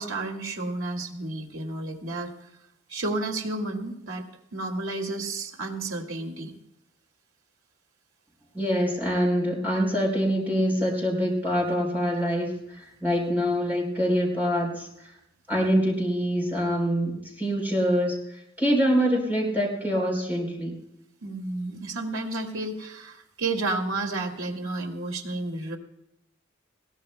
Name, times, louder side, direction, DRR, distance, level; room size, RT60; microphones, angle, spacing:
voice 1, 0.0-2.3 2.9-4.2 4.5-6.5 21.2-25.8, right 2 dB, 85° right, 1 dB, 2.2 m, -31 dB
voice 2, 8.5-12.5 13.0-14.9 15.5-18.2 18.6-20.8, equal, 10° right, -2 dB, 4.1 m, -25 dB
20.5 x 17.5 x 2.2 m, 0.84 s
head